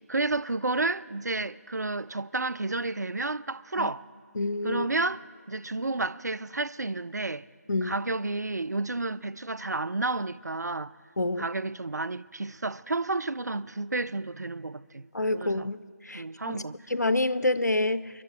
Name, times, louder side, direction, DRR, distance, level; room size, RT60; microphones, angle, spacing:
voice 1, 0.1-4.1 4.6-5.2 5.5-7.4 7.8-10.9 11.4-15.7 16.1-16.7, right 2 dB, 80° right, 0.4 m, -31 dB
voice 2, 4.4-4.9 7.7-8.0 11.2-11.5 15.1-15.8 16.1-16.6 16.9-18.1, left 2 dB, 80° left, 0.6 m, -27 dB
28.5 x 12.0 x 3.0 m
figure-of-eight pair, 160°, 9 cm